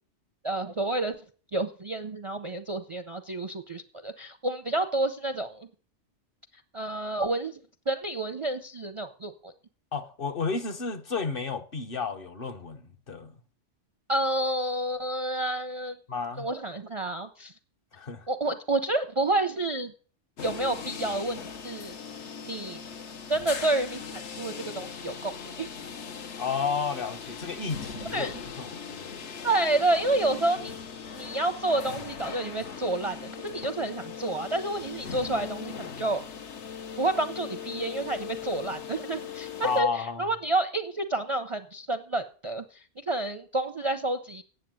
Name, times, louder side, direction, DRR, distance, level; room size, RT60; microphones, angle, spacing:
voice 1, 0.4-1.2 1.5-5.7 6.7-7.6 7.9-9.5 14.1-16.0 16.4-17.5 18.3-19.9 20.4-21.9 22.4-22.8 23.3-25.7 28.1-28.4 29.4-30.8 31.1-36.2 37.0-44.4, right 2 dB, 40° right, 0.5 m, -29 dB
voice 2, 9.9-13.3 16.1-16.5 17.9-18.2 26.4-29.3 39.6-40.3, left 5 dB, 50° left, 1.1 m, -32 dB
sound 1, 20.4-39.8, left 6 dB, 70° left, 1.2 m, -39 dB
9.0 x 7.4 x 7.6 m
omnidirectional pair, 1.3 m